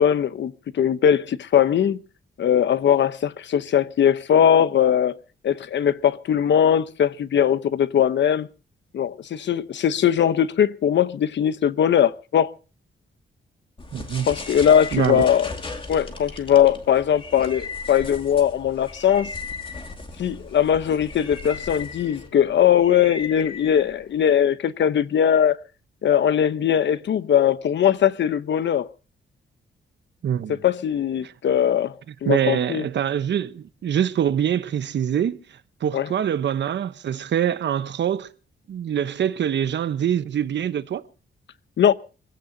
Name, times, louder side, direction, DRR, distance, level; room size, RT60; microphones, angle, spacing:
voice 1, 0.0-2.0 2.4-5.2 5.4-8.5 8.9-12.5 14.3-15.5 15.9-19.3 20.2-25.6 26.0-28.9 30.5-31.9 32.2-32.8 35.9-36.1 41.8-41.9, left 9 dB, 60° left, 0.9 m, -20 dB
sound 1, 13.8-24.4, left 3 dB, 25° left, 2.3 m, -37 dB
voice 2, 13.9-14.3 14.9-15.2 30.2-30.6 31.2-31.3 32.3-35.4 35.8-38.3 38.7-41.0, right 9 dB, 60° right, 1.0 m, -24 dB
26.0 x 16.5 x 2.8 m
wide cardioid pair, 180°, 21 cm